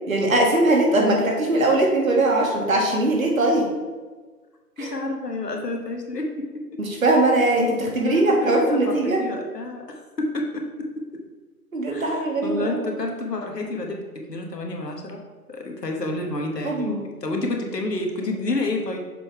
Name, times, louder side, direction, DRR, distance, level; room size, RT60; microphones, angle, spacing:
voice 1, 0.1-3.7 4.8-4.9 6.8-9.2 11.7-12.8 16.6-17.0, right 2 dB, 55° right, 0 dB, 1.6 m, -20 dB
voice 2, 4.8-6.8 8.1-10.9 11.9-14.0 14.3-15.2 15.5-19.0, left 2 dB, 85° left, 2 dB, 1.4 m, -29 dB
6.8 x 3.7 x 4.6 m, 1.4 s
figure-of-eight pair, 160°, 47 cm